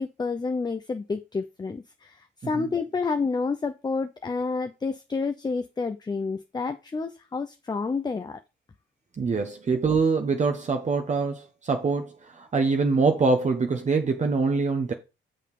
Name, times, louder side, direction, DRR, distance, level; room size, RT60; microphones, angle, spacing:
voice 1, 0.0-8.4, left 4 dB, 20° left, 0.7 m, -29 dB
voice 2, 9.2-14.9, right 4 dB, 35° right, 1.1 m, -24 dB
6.5 x 5.3 x 5.4 m
cardioid pair, 90°, 20 cm